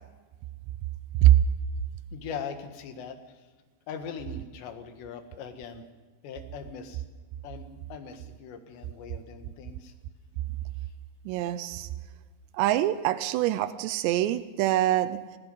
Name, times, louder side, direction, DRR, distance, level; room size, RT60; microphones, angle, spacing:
voice 1, 2.1-3.2 3.9-5.9 6.2-7.0 7.4-9.9, left 6 dB, 85° left, 6 dB, 3.9 m, -40 dB
voice 2, 11.3-11.9 12.5-15.2, right 14 dB, 90° right, 13 dB, 3.0 m, -23 dB
24.5 x 19.0 x 5.5 m, 1.4 s
omnidirectional pair, 4.9 m